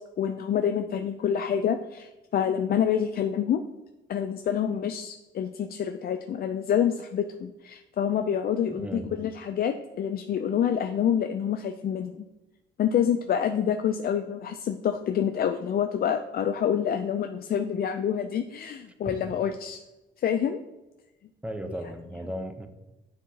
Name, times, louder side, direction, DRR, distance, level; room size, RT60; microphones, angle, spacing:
voice 1, 0.2-3.6 4.1-12.1 12.8-19.8 20.2-20.6, left 8 dB, 50° left, 7 dB, 0.4 m, -27 dB
voice 2, 8.7-9.2 19.0-19.1 21.4-22.7, equal, 5° right, 6 dB, 0.7 m, -36 dB
9.2 x 4.6 x 2.8 m, 1.1 s
cardioid pair, 90°, 20 cm